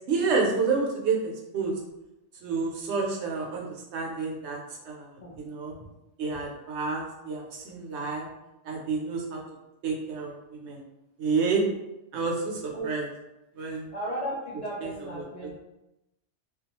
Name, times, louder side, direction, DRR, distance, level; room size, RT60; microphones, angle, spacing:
voice 1, 0.1-1.7 2.4-5.8 6.2-8.3 8.6-9.4 9.8-10.8 11.2-11.6 12.1-13.0 13.6-13.9 14.8-14.9 15.2-15.3, right 4 dB, 75° right, -1 dB, 0.9 m, -29 dB
voice 2, 13.9-15.6, right 1 dB, 55° left, -6 dB, 0.4 m, -35 dB
2.3 x 2.3 x 2.8 m, 0.92 s
omnidirectional pair, 1.2 m